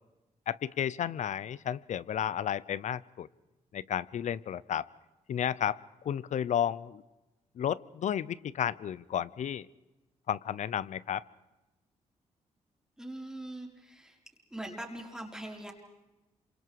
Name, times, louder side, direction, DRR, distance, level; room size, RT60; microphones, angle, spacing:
voice 1, 0.5-3.3 3.7-4.9 5.3-5.8 6.0-7.0 7.6-9.7 10.3-11.2, left 9 dB, 70° left, 20 dB, 0.8 m, -32 dB
voice 2, 13.0-14.2 14.5-15.7, right 1 dB, 5° right, 0 dB, 4.8 m, -42 dB
28.0 x 26.0 x 4.8 m, 1.0 s
cardioid pair, 80°, 13 cm